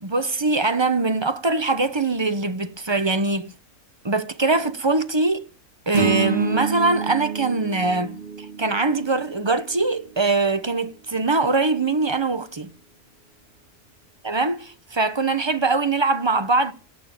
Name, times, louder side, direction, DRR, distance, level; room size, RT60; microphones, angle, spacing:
voice 1, 0.0-3.5 4.0-5.4 5.9-8.2 8.6-12.7 14.2-16.7, right 3 dB, 25° right, 0.9 m, -22 dB
sound 1, 5.9-10.2, right 6 dB, 45° right, 2.1 m, -28 dB
17.5 x 9.1 x 9.0 m
omnidirectional pair, 1.4 m